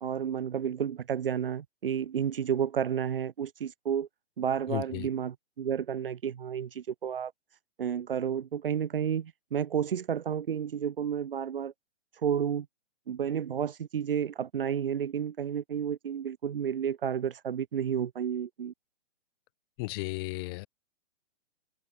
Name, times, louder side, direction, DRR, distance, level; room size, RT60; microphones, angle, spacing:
voice 1, 0.0-4.1 4.4-7.3 7.8-11.7 12.2-12.7 13.1-18.7, right 8 dB, 55° right, 1.7 m, -31 dB
voice 2, 4.7-5.1 19.8-20.7, left 26 dB, 20° left, 4.9 m, -34 dB
hypercardioid pair, 175°, 34 cm